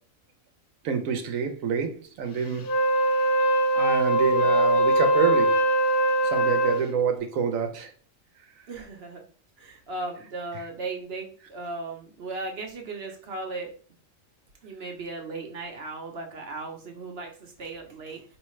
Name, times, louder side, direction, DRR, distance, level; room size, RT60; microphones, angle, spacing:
voice 1, 0.8-2.8 3.0-3.3 3.7-5.6 6.2-7.9, right 6 dB, 75° right, 1.1 m, -27 dB
Wind instrument woodwind instrument, 2.6-6.9, right 1 dB, 55° left, 0.8 m, -22 dB
voice 2, 8.7-9.3 9.6-13.7 14.6-18.2, right 3 dB, 55° right, 1.0 m, -36 dB
4.6 x 3.1 x 3.1 m
omnidirectional pair, 1.4 m